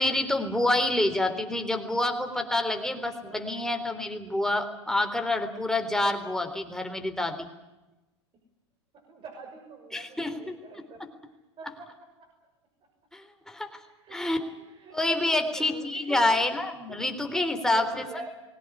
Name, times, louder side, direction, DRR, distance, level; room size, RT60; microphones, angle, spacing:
voice 1, 0.0-7.5 9.9-10.6 13.1-13.7 14.1-14.4 14.9-17.9, left 2 dB, 5° left, 5 dB, 3.6 m, -27 dB
voice 2, 3.2-3.8 8.9-11.0 11.6-11.9 12.2-12.3 13.8-15.0 15.3-16.2 16.9-17.0 17.5-18.3, right 3 dB, 35° right, 1 dB, 6.3 m, -45 dB
21.5 x 18.0 x 9.9 m, 1.0 s
hypercardioid pair, 100°, 15 cm